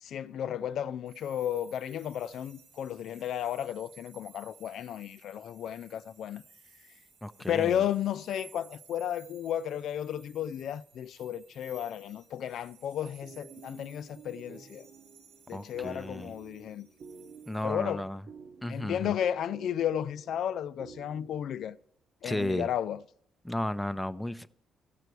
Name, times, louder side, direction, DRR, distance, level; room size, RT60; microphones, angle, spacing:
voice 1, 0.0-6.4 7.5-14.8 15.5-16.9 17.6-18.0 18.7-21.8 22.2-23.0, left 10 dB, 70° left, 0.3 m, -33 dB
sound 1, 1.1-17.6, right 5 dB, 90° right, 2.2 m, -58 dB
voice 2, 7.2-7.8 15.5-16.3 17.5-18.2 18.6-19.1 22.2-22.7 23.4-24.5, left 1 dB, 5° left, 0.5 m, -34 dB
sound 2, 13.0-21.5, right 5 dB, 65° right, 1.5 m, -51 dB
15.5 x 6.7 x 4.7 m
cardioid pair, 90°, 0 cm